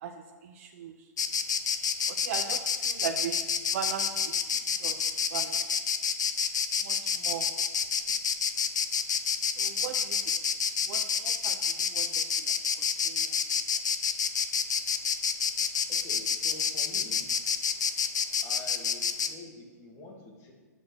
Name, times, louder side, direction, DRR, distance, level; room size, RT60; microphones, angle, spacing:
voice 1, 0.0-1.1 2.1-4.4 4.8-5.6 6.8-7.5 9.4-10.4 10.8-13.6, right 8 dB, 50° right, 4 dB, 0.6 m, -39 dB
Insect, 1.2-19.3, left 6 dB, 80° left, 0.7 m, -28 dB
voice 2, 15.9-17.3 18.4-20.5, left 2 dB, 25° left, 0 dB, 1.8 m, -47 dB
6.3 x 5.3 x 6.1 m, 1.4 s
hypercardioid pair, 135°, 10 cm